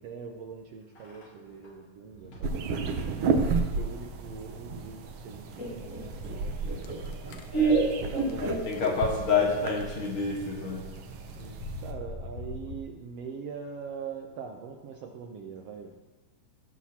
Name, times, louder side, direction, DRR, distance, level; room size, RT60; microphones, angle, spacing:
voice 1, 0.0-3.0 3.4-7.4 8.0-8.7 9.4-9.8 11.4-16.0, right 6 dB, 70° right, 2 dB, 1.6 m, -42 dB
sound 1, 2.4-11.9, right 4 dB, 90° right, 1.2 m, -33 dB
Laughter, 5.6-9.2, right 3 dB, 30° left, 1.7 m, -29 dB
sound 2, 6.8-7.5 8.2-8.3 8.6-8.9 9.5-9.8 10.7-12.8, left 3 dB, 75° left, 1.6 m, -41 dB
voice 2, 8.7-10.8, left 5 dB, 55° left, -3 dB, 2.1 m, -27 dB
17.5 x 6.2 x 2.8 m, 1.2 s
omnidirectional pair, 3.4 m